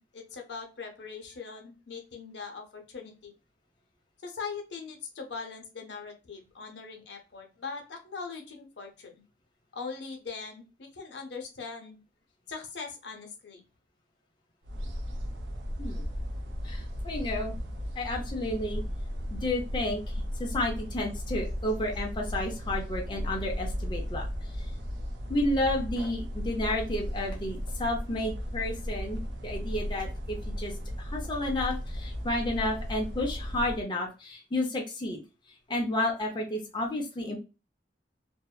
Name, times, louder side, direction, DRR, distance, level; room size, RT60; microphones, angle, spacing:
voice 1, 0.0-3.3 4.2-9.2 9.7-12.0 12.5-13.6, left 5 dB, 75° left, 3 dB, 0.7 m, -41 dB
sound 1, 14.6-33.8, equal, 85° right, 0.6 m, -35 dB
voice 2, 16.6-17.6 18.0-18.8 19.3-24.3 24.5-24.7 25.3-30.7 31.0-35.2 35.7-37.4, left 1 dB, 25° left, 0 dB, 0.5 m, -31 dB
2.6 x 2.1 x 2.2 m, 0.30 s
head